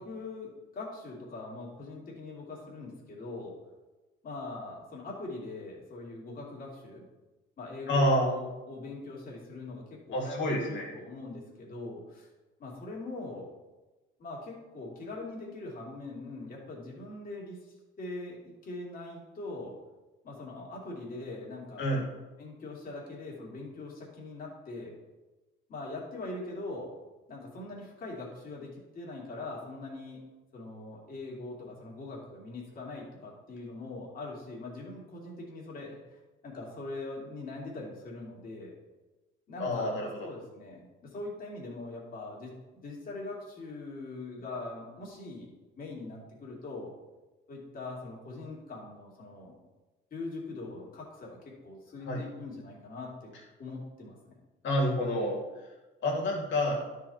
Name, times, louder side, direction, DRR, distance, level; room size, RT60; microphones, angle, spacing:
voice 1, 0.0-3.5 4.2-7.0 7.6-12.3 12.6-13.5 14.2-19.8 20.2-22.0 22.4-24.9 25.7-26.9 27.3-30.2 30.5-38.7 39.5-45.5 45.8-46.9 47.5-49.6 50.1-53.3 53.6-54.3, left 2 dB, 45° left, -3 dB, 2.7 m, -42 dB
voice 2, 7.9-8.3 10.1-10.9 21.8-22.1 39.6-40.3 52.1-52.2 54.6-55.4 56.0-56.8, left 1 dB, 65° left, -2 dB, 2.7 m, -28 dB
12.5 x 4.8 x 4.3 m, 1.1 s
cardioid pair, 145°, 21 cm